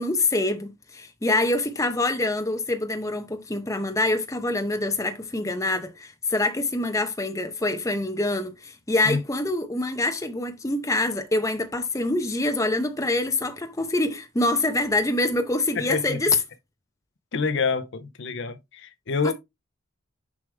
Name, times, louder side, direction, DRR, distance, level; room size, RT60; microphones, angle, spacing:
voice 1, 0.0-16.4, left 2 dB, 15° left, 0.8 m, -25 dB
voice 2, 15.8-16.2 17.3-19.3, left 4 dB, 55° left, 0.6 m, -27 dB
7.1 x 4.8 x 3.3 m
head